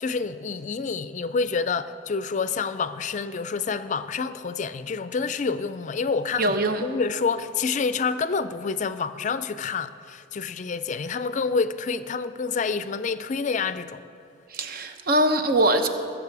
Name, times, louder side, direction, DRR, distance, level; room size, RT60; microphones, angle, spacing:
voice 1, 0.0-6.6 6.8-14.0, left 5 dB, 40° left, 0.4 m, -28 dB
voice 2, 6.4-6.8 14.5-15.9, right 1 dB, 55° right, 0.8 m, -22 dB
20.0 x 7.4 x 4.7 m
head